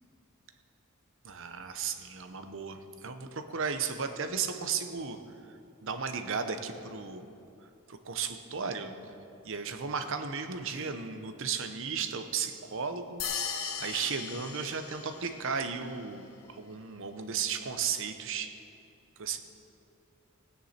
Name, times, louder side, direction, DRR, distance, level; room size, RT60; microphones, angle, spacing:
voice 1, 1.2-5.2 5.5-7.2 7.9-9.0 9.4-13.2 13.8-18.6 19.2-19.4, right 6 dB, 60° right, 8 dB, 0.8 m, -35 dB
sound 1, 13.2-15.5, left 7 dB, 70° left, 0.9 m, -37 dB
17.5 x 9.6 x 4.3 m, 2.7 s
head